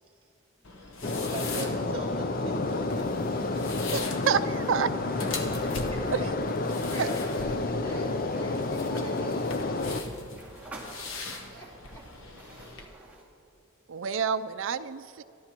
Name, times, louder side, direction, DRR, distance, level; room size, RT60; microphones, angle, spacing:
sound 1, 0.6-12.9, left 3 dB, 70° left, 1.1 m, -41 dB
voice 1, 0.8-4.3, right 1 dB, 25° right, -2 dB, 2.3 m, -42 dB
sound 2, 1.0-10.0, left 2 dB, 40° left, 0.5 m, -30 dB
voice 2, 4.3-4.9 6.1-6.2 7.0-7.1 13.9-15.2, right 6 dB, 70° right, 14 dB, 0.4 m, -28 dB
sound 3, 4.4-13.3, right 2 dB, 5° right, 2.1 m, -50 dB
voice 3, 5.2-6.2 6.6-9.5 11.3-12.4, right 1 dB, 15° left, -3 dB, 2.1 m, -48 dB
23.0 x 12.5 x 3.0 m, 2.7 s
head